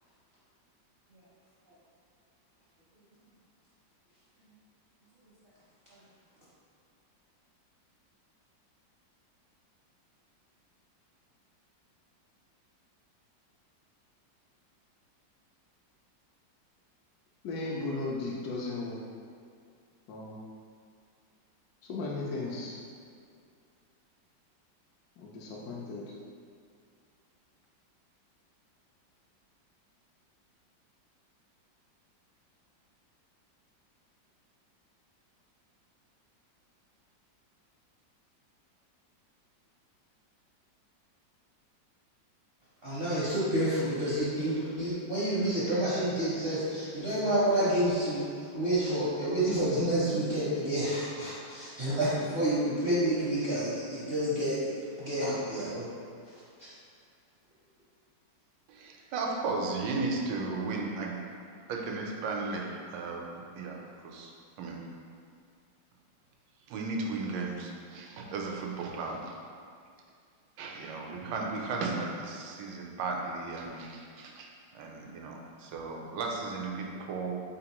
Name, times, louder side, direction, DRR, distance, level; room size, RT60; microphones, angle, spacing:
voice 1, 17.4-19.0 20.1-20.4 21.9-22.8 25.2-26.0, left 3 dB, 70° left, -4 dB, 1.0 m, -36 dB
voice 2, 42.8-48.2 48.5-55.9, right 1 dB, 50° right, -10 dB, 0.7 m, -29 dB
voice 3, 58.7-61.2 61.7-64.3 64.6-64.8 66.7-69.4 70.6-77.4, right 3 dB, 80° right, 0 dB, 1.3 m, -35 dB
4.1 x 3.5 x 2.9 m, 2.3 s
omnidirectional pair, 2.0 m